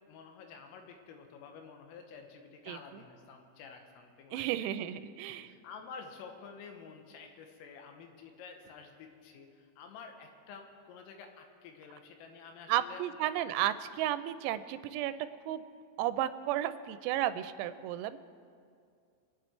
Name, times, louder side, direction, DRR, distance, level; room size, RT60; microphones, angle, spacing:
voice 1, 0.1-4.7 5.3-13.5, left 5 dB, 80° left, 4 dB, 3.6 m, -50 dB
voice 2, 2.7-3.0 4.3-5.5 12.7-15.1 15.5-15.6 16.0-18.2, right 12 dB, 90° right, 12 dB, 3.3 m, -33 dB
26.0 x 9.3 x 4.4 m, 2.3 s
omnidirectional pair, 6.0 m